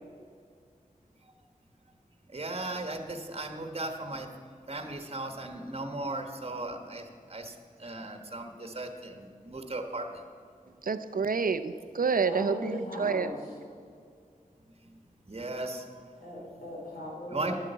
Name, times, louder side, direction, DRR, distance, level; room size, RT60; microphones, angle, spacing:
voice 1, 2.3-4.3 4.7-10.2 14.8-14.9 15.3-16.0 17.3-17.6, right 2 dB, 40° right, 5 dB, 1.2 m, -37 dB
voice 2, 10.8-13.3, right 5 dB, 75° right, 12 dB, 0.6 m, -28 dB
voice 3, 12.2-13.4 16.2-17.6, left 1 dB, 85° left, -3 dB, 4.0 m, -38 dB
10.5 x 8.4 x 8.0 m, 2.2 s
wide cardioid pair, 65°, 15 cm